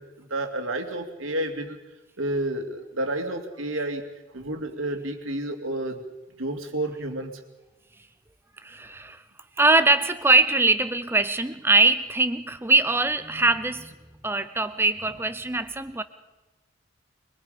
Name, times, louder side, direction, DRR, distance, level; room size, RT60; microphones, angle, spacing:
voice 1, 0.0-1.8 2.2-4.0 4.3-6.0 6.4-7.4, right 1 dB, 80° right, 5 dB, 2.6 m, -30 dB
voice 2, 8.6-9.2 9.6-13.9 14.2-16.0, right 3 dB, 10° right, 11 dB, 0.7 m, -22 dB
23.5 x 22.0 x 5.2 m, 1.1 s
head